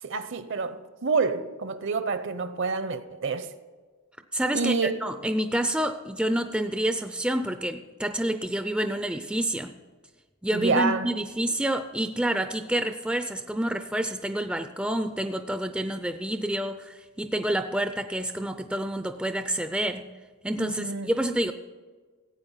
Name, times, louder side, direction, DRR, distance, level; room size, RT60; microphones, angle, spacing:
voice 1, 0.0-3.5 4.5-5.0 10.5-11.1 20.6-21.1, right 4 dB, 55° right, 0.8 m, -28 dB
voice 2, 4.3-9.7 10.4-20.1 20.4-21.5, right 1 dB, 5° right, 0.4 m, -28 dB
15.0 x 8.6 x 5.6 m
head